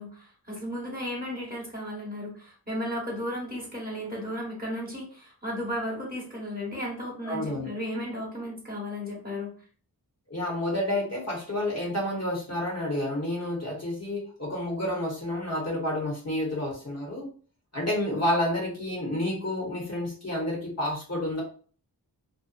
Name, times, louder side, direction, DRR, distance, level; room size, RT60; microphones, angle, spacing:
voice 1, 0.0-9.5, left 1 dB, 20° right, -3 dB, 1.2 m, -34 dB
voice 2, 7.2-7.7 10.3-17.3 17.7-21.4, left 1 dB, 40° left, -2 dB, 1.2 m, -29 dB
2.6 x 2.2 x 2.5 m, 0.41 s
wide cardioid pair, 40°, 40 cm